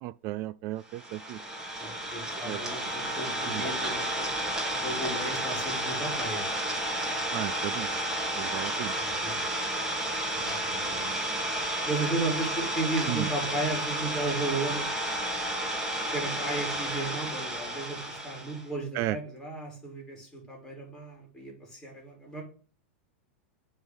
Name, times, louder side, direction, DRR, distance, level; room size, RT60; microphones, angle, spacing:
voice 1, 0.0-1.4 2.4-2.6 3.5-3.6 7.3-7.9 8.4-8.9 10.7-11.2 13.1-13.3 19.0-19.2, right 16 dB, 45° right, 0.3 m, -34 dB
Idling, 0.9-18.6, right 1 dB, 10° right, 2.0 m, -32 dB
voice 2, 1.8-4.5 4.7-6.4 8.9-9.5 9.9-10.1 10.3-10.8 11.8-14.9 16.1-22.4, right 2 dB, 10° left, 3.7 m, -34 dB
7.8 x 3.7 x 6.2 m
hypercardioid pair, 120°, 6 cm